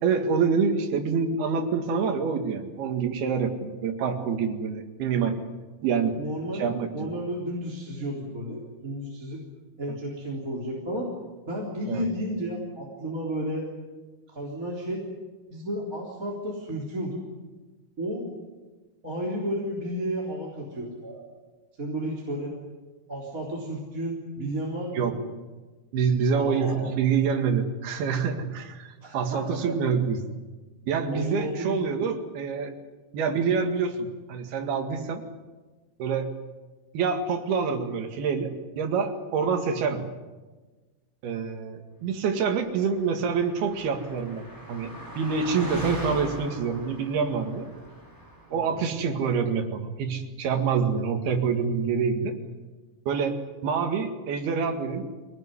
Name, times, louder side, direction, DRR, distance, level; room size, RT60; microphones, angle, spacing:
voice 1, 0.0-5.4 5.8-6.1 6.5-7.1 11.9-12.1 24.9-25.1 25.9-30.2 30.9-32.7 33.1-35.2 36.0-36.3 36.9-40.1 41.2-47.7 48.5-52.4 53.1-53.4 53.6-55.0, right 6 dB, 80° right, 5 dB, 3.9 m, -26 dB
voice 2, 6.2-6.7 6.9-9.4 9.8-11.1 11.5-13.7 14.3-15.0 15.5-17.2 18.0-18.2 19.0-21.2 21.8-22.5 23.1-25.2 26.3-26.9 29.0-29.4 29.7-29.8 31.1-31.8 48.5-48.8, equal, 20° right, -3 dB, 3.9 m, -32 dB
Car passing by, 42.7-48.6, equal, 5° left, 5.4 m, -39 dB
25.0 x 18.5 x 9.8 m, 1.3 s
omnidirectional pair, 4.4 m